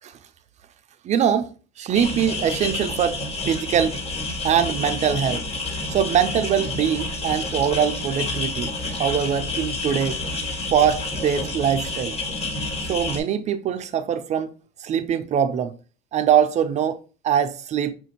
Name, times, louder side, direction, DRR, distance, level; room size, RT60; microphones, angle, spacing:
voice 1, 1.1-1.5 1.8-3.2 3.5-4.0 4.4-5.4 5.9-8.7 9.0-10.1 10.7-12.2 12.9-14.5 14.8-15.7 16.1-17.0 17.2-17.9, right 8 dB, 35° right, 0.4 m, -22 dB
sound 1, 1.9-13.2, left 2 dB, 30° left, 1.5 m, -29 dB
5.6 x 2.5 x 2.8 m
supercardioid pair, 115°, 20 cm